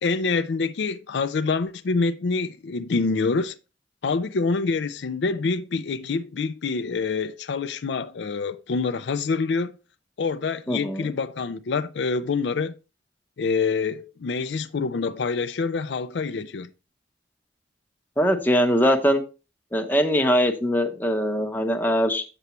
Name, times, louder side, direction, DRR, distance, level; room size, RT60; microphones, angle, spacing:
voice 1, 0.0-3.6 4.0-9.7 10.2-12.7 13.4-16.7, left 4 dB, 65° left, 0.4 m, -26 dB
voice 2, 10.7-11.1 18.2-19.2 19.7-22.2, equal, 10° left, 0.8 m, -22 dB
8.0 x 6.9 x 3.0 m
head